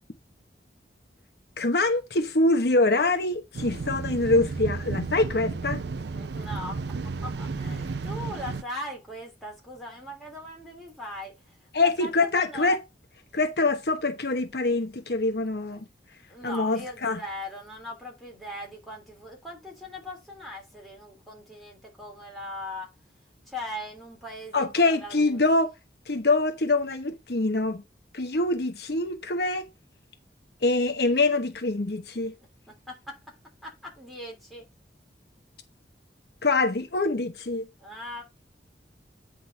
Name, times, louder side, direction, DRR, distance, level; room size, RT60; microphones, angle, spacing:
voice 1, 1.6-5.8 11.7-12.8 13.3-15.9 16.4-17.2 24.5-25.7 26.1-27.8 28.1-29.6 30.6-32.3 36.4-37.7, left 2 dB, 60° left, 1.0 m, -24 dB
sound 1, 3.5-8.6, right 4 dB, 70° right, 0.5 m, -33 dB
voice 2, 6.0-6.8 7.2-12.8 16.3-22.9 23.5-25.4 32.9-33.2 33.6-34.6 37.8-38.2, left 1 dB, ahead, 3.2 m, -40 dB
9.3 x 3.7 x 5.5 m
head